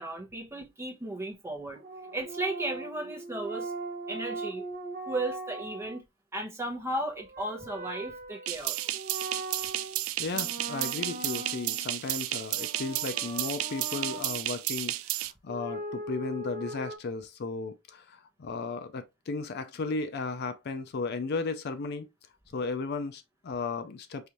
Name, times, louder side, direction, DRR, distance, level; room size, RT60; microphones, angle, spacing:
voice 1, 0.0-1.8 2.1-3.7 4.1-4.6 5.1-6.0 6.3-8.9, right 1 dB, 10° right, 0.9 m, -35 dB
sound 1, 1.7-6.0 7.1-10.0 10.3-12.0 12.5-14.4 15.5-17.0, right 2 dB, 45° right, 0.8 m, -40 dB
sound 2, 8.5-15.3, right 14 dB, 75° right, 0.3 m, -33 dB
voice 2, 10.2-22.1 22.5-24.3, left 3 dB, 50° left, 0.4 m, -35 dB
4.8 x 2.6 x 2.9 m
head